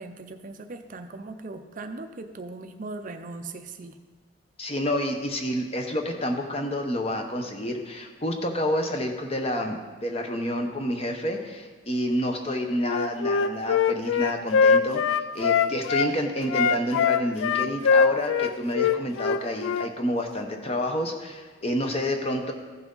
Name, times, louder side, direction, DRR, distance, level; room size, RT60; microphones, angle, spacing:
voice 1, 0.0-3.9, right 3 dB, 40° right, 7 dB, 0.5 m, -39 dB
voice 2, 4.6-22.5, equal, 30° left, 4 dB, 0.8 m, -29 dB
Wind instrument woodwind instrument, 12.8-16.1 16.5-19.9, left 6 dB, 70° left, 0.3 m, -22 dB
14.5 x 5.9 x 3.9 m, 1.4 s
head